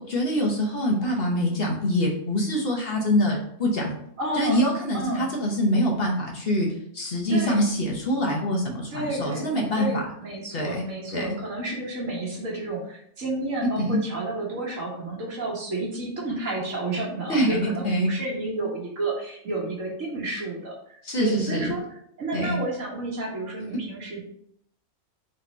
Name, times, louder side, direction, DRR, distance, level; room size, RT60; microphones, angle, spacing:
voice 1, 0.0-4.0 4.3-10.0 10.5-10.8 11.1-11.4 13.8-14.0 17.3-17.6 17.8-18.1 21.0-21.7 22.3-22.6, equal, 50° left, -1 dB, 1.1 m, -25 dB
voice 2, 4.2-4.6 4.9-5.3 7.3-7.7 8.9-21.8 22.2-24.2, right 2 dB, 70° right, -3 dB, 1.8 m, -31 dB
4.0 x 3.2 x 4.1 m, 0.68 s
omnidirectional pair, 1.4 m